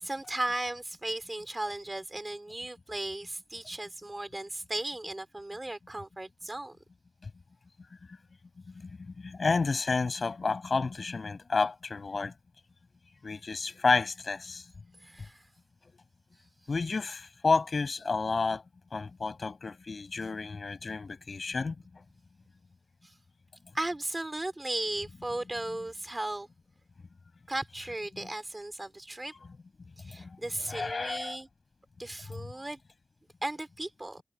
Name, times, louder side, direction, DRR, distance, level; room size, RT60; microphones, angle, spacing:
voice 1, 0.0-6.8 15.0-15.4 23.7-26.5 27.5-29.3 30.0-31.5 32.0-32.8 33.4-34.2, right 2 dB, 25° right, 4.2 m, -36 dB
voice 2, 8.7-12.3 13.2-14.7 16.7-18.6 18.9-22.0 28.1-28.3 30.0-31.4 32.3-32.5, left 4 dB, 65° left, 7.4 m, -31 dB
wide cardioid pair, 70°, 0 cm